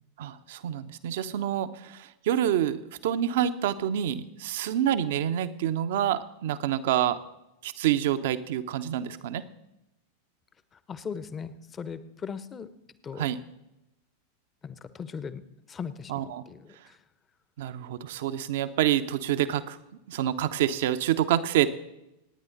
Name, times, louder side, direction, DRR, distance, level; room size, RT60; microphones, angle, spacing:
voice 1, 0.2-7.2 7.6-9.4 13.2-13.4 16.1-16.4 17.6-19.8 20.1-21.7, right 11 dB, 55° right, 12 dB, 0.8 m, -27 dB
voice 2, 10.7-12.7 13.0-13.3 14.6-17.0, left 6 dB, 20° left, 15 dB, 0.9 m, -39 dB
26.5 x 9.6 x 4.0 m, 0.91 s
figure-of-eight pair, 90°, 0 cm